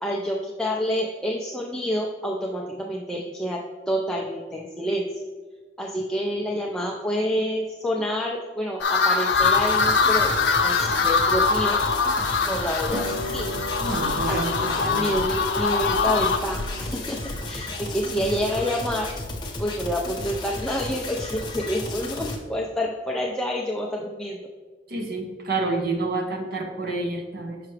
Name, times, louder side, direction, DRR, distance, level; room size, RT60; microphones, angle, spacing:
voice 1, 0.0-3.6 3.9-5.1 5.8-10.3 10.6-11.8 12.4-13.5 14.3-17.2 17.4-19.1 19.6-24.4, equal, 5° left, -2 dB, 0.4 m, -28 dB
sound 1, 8.8-16.4, left 5 dB, 70° left, 0.6 m, -23 dB
sound 2, 9.3-22.4, left 2 dB, 25° left, 0.9 m, -34 dB
Harp, 12.9-19.6, equal, 85° right, 0.8 m, -37 dB
voice 2, 13.8-15.1 18.2-18.3 24.9-27.6, right 2 dB, 60° right, 3 dB, 0.9 m, -29 dB
5.8 x 5.7 x 3.2 m, 1.4 s
head